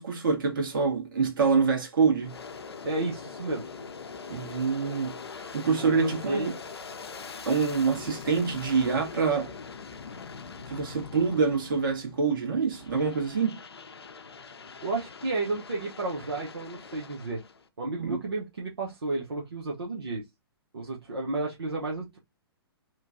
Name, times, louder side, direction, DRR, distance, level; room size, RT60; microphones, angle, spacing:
voice 1, 0.0-2.3 4.3-6.5 7.4-9.5 10.7-13.6 18.0-18.2, right 5 dB, 55° right, 1.5 m, -26 dB
Aircraft, 2.2-12.2 12.7-17.7, left 5 dB, 75° left, 0.5 m, -43 dB
voice 2, 2.8-3.7 5.8-6.5 14.8-17.4 17.8-20.2 20.7-22.2, right 2 dB, 75° right, 0.8 m, -32 dB
3.0 x 2.3 x 2.6 m
figure-of-eight pair, 120°, 13 cm